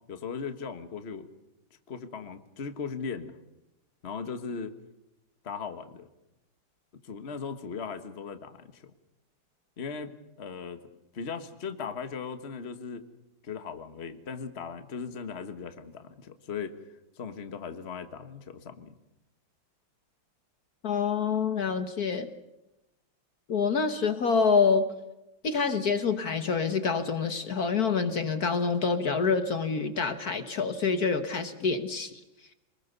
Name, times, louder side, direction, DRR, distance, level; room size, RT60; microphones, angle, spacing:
voice 1, 0.1-1.3 1.9-3.3 4.0-4.7 5.4-6.1 7.0-8.9 9.8-10.1 10.4-10.8 11.1-13.0 13.4-16.7 17.2-18.9, left 5 dB, 35° left, 9 dB, 1.6 m, -38 dB
voice 2, 20.8-22.3 23.5-24.9 25.4-32.1, left 5 dB, 55° left, 9 dB, 1.7 m, -26 dB
27.5 x 20.5 x 6.7 m, 0.93 s
omnidirectional pair, 2.0 m